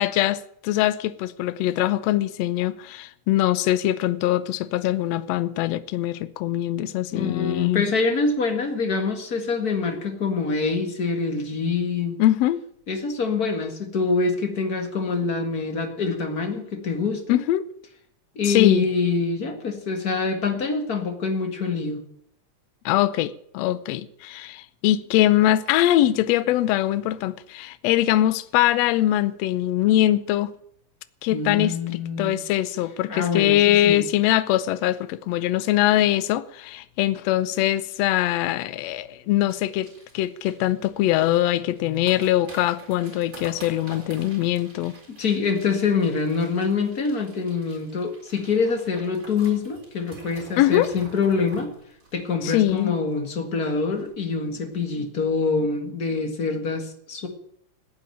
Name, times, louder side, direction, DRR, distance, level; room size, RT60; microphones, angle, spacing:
voice 1, 0.0-7.8 12.2-12.6 17.3-17.6 18.4-18.9 22.8-30.5 31.2-31.7 32.2-45.0 50.6-50.9 52.4-52.9, left 14 dB, 70° left, 1.7 m, -22 dB
voice 2, 7.1-12.2 12.9-17.4 18.4-22.0 31.3-32.4 33.1-34.0 45.1-51.7 52.1-57.3, left 4 dB, 35° left, 2.0 m, -25 dB
sound 1, 39.5-53.3 53.6-53.7 53.9-54.2 54.6-54.8, right 2 dB, 25° right, 4.3 m, -47 dB
15.5 x 9.0 x 9.1 m
omnidirectional pair, 3.4 m